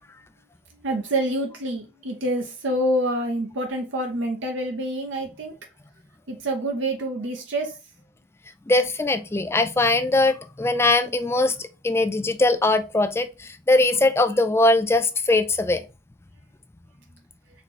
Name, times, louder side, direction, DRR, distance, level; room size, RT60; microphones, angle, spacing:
voice 1, 0.7-5.5 6.3-7.8, right 1 dB, 85° right, 0.9 m, -27 dB
voice 2, 8.7-11.6 11.8-15.8, left 2 dB, 15° left, 0.3 m, -21 dB
4.2 x 3.0 x 4.2 m
head